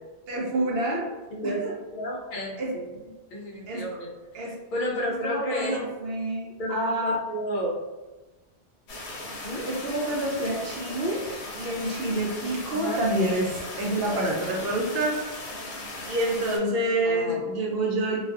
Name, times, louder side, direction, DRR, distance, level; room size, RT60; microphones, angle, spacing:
voice 1, 0.3-1.1 1.4-1.7 2.6-2.7 3.7-3.9 4.3-4.6 5.2-7.2 9.6-11.3 11.6-15.2 16.1-18.2, right 1 dB, 70° right, -1 dB, 0.7 m, -27 dB
voice 2, 1.3-1.6 1.9-4.1 4.4-5.8 6.6-7.7 9.4-9.7 12.7-13.0 17.0-17.4, equal, 60° left, -2 dB, 0.6 m, -32 dB
sound 1, 8.9-16.6, left 2 dB, 80° left, 0.9 m, -38 dB
2.4 x 2.3 x 2.3 m, 1.1 s
omnidirectional pair, 1.1 m